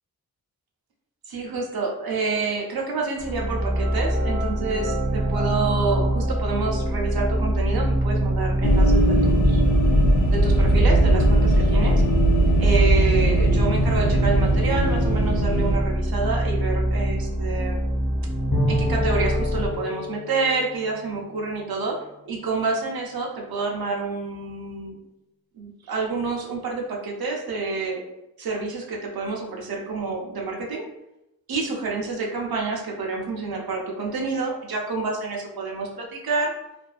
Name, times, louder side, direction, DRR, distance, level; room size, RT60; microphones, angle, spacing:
voice 1, 1.3-9.6 10.3-12.0 12.6-17.7 18.7-25.0 25.5-28.0 28.4-30.9 31.5-36.5, right 3 dB, 80° right, 0 dB, 0.6 m, -28 dB
sound 1, 3.2-19.7, right 1 dB, 20° right, 0.4 m, -24 dB
sound 2, 8.6-15.8, right 1 dB, 55° left, 0.5 m, -19 dB
Bowed string instrument, 18.5-22.2, left 2 dB, 75° left, 0.9 m, -31 dB
2.6 x 2.4 x 2.3 m, 0.89 s
wide cardioid pair, 85°, 36 cm